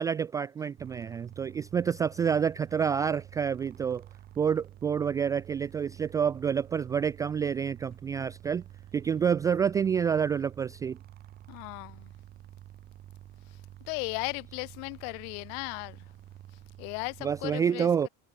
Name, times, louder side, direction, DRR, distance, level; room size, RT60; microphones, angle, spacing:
voice 1, 0.0-4.0 4.4-8.6 8.9-11.0 17.2-18.1, right 7 dB, 10° right, 0.4 m, -28 dB
sound 1, 0.8-17.6, right 12 dB, 25° right, 5.1 m, -49 dB
voice 2, 11.5-12.1 13.9-16.1 16.8-18.1, left 40 dB or more, 50° left, 6.6 m, -36 dB
supercardioid pair, 175°, 34 cm